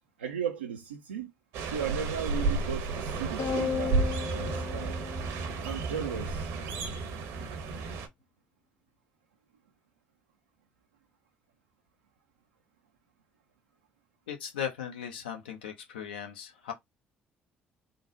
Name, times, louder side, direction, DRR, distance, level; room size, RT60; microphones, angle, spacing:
voice 1, 0.2-1.3 1.6-5.0 5.6-6.5, right 8 dB, 90° right, 0.4 m, -36 dB
sound 1, 1.5-8.1, right 4 dB, 70° right, 0.7 m, -32 dB
sound 2, 3.4-6.0, left 7 dB, 55° left, 0.4 m, -34 dB
voice 2, 14.3-16.7, left 8 dB, 85° left, 0.8 m, -37 dB
3.7 x 2.1 x 3.7 m
hypercardioid pair, 50°, 5 cm